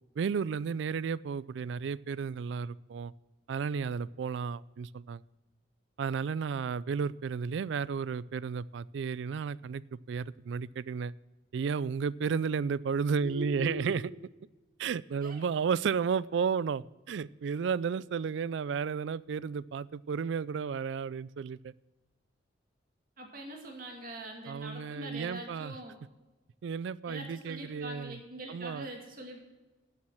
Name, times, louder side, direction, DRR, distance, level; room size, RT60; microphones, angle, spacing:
voice 1, 0.2-3.1 3.5-5.2 6.0-9.8 10.1-11.1 11.5-14.1 14.8-21.7 24.5-25.8 26.6-28.2 28.5-28.9, right 6 dB, 70° right, 20 dB, 0.3 m, -33 dB
voice 2, 13.2-14.0 15.2-15.4 23.2-26.0 27.1-29.4, right 1 dB, 45° right, 2 dB, 2.3 m, -42 dB
12.5 x 7.3 x 6.2 m, 1.2 s
head